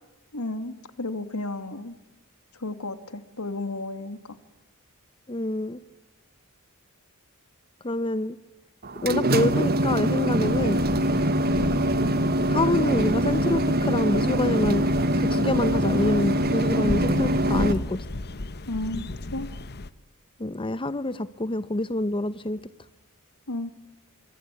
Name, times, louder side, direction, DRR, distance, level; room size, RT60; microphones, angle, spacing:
voice 1, 0.3-2.0 2.5-4.4 18.7-19.5 23.5-23.7, left 2 dB, 85° left, 10 dB, 2.6 m, -33 dB
voice 2, 5.3-5.8 7.8-8.4 9.0-10.8 12.5-14.9 15.3-18.0 20.4-22.6, left 2 dB, 25° left, 14 dB, 0.8 m, -26 dB
sound 1, 8.8-17.7, right 1 dB, 45° right, 1.3 m, -23 dB
sound 2, 10.4-19.9, left 2 dB, 50° left, 1.1 m, -35 dB
26.0 x 25.0 x 8.5 m, 1.1 s
head